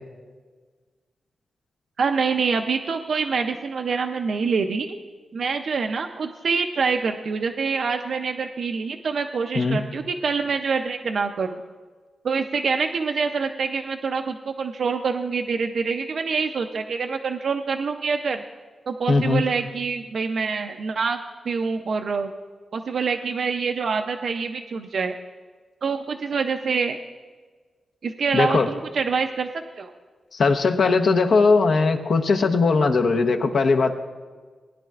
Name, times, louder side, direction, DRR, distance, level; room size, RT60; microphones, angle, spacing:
voice 1, 2.0-4.9 5.3-11.6 12.2-18.4 18.9-21.2 21.5-22.3 22.7-25.1 25.8-27.0 28.0-29.5 29.8-29.9, right 5 dB, 65° right, 5 dB, 0.5 m, -25 dB
voice 2, 19.1-19.4 28.3-28.7 30.3-34.0, left 4 dB, 70° left, 4 dB, 0.9 m, -19 dB
19.5 x 10.0 x 2.4 m, 1.5 s
wide cardioid pair, 110°, 0 cm